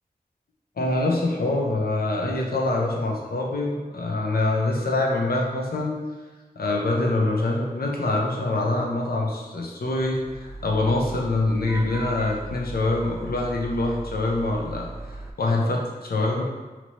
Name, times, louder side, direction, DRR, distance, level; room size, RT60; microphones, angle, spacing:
voice 1, 0.8-6.0 6.6-16.4, left 2 dB, 80° left, -1 dB, 0.7 m, -25 dB
Vehicle horn car horn honking / Traffic noise roadway noise, 10.0-15.3, right 2 dB, 20° right, 0.4 m, -38 dB
3.0 x 2.9 x 4.2 m, 1.2 s
cardioid pair, 45°, 15 cm